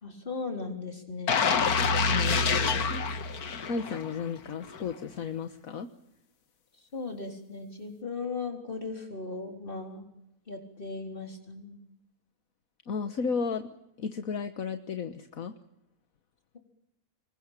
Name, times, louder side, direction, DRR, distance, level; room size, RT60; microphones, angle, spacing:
voice 1, 0.0-1.4 6.9-10.1 10.5-11.8, left 4 dB, 35° left, 4 dB, 4.1 m, -37 dB
sound 1, 1.3-4.2 4.6-4.8, left 5 dB, 90° left, 1.9 m, -26 dB
voice 2, 2.1-2.4 3.7-5.9 12.9-13.7 14.0-15.5, left 5 dB, 70° left, 9 dB, 1.6 m, -33 dB
26.5 x 21.5 x 9.0 m, 0.83 s
omnidirectional pair, 1.5 m